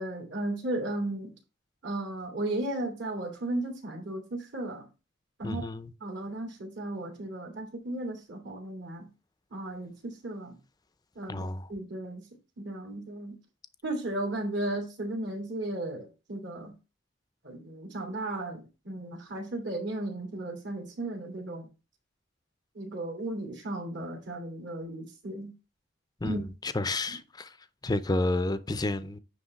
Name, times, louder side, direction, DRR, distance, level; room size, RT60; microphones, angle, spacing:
voice 1, 0.0-1.3 1.8-4.8 5.4-5.6 6.0-9.1 9.5-10.6 11.1-12.2 12.6-13.3 13.8-16.7 17.4-21.7 22.7-25.5 26.2-26.4, right 1 dB, 65° right, 2.8 m, -35 dB
voice 2, 5.4-5.9 11.3-11.7 26.2-27.5 27.8-29.2, left 2 dB, 20° left, 0.5 m, -30 dB
9.5 x 3.2 x 5.9 m
head